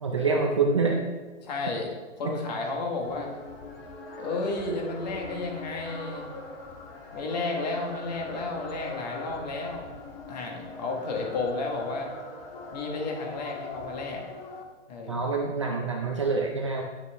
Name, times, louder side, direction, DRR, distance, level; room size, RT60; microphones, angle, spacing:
voice 1, 0.0-1.0 2.2-2.3 15.1-16.8, right 4 dB, 25° right, 1 dB, 0.5 m, -26 dB
voice 2, 1.4-1.9 2.2-3.3 4.2-6.3 7.1-9.9 10.3-12.1 12.7-14.2 14.9-15.2, left 3 dB, 35° left, 1 dB, 1.6 m, -32 dB
sound 1, 3.0-14.6, left 3 dB, 50° left, 1.7 m, -42 dB
10.5 x 6.8 x 3.5 m, 1.2 s
hypercardioid pair, 165°, 37 cm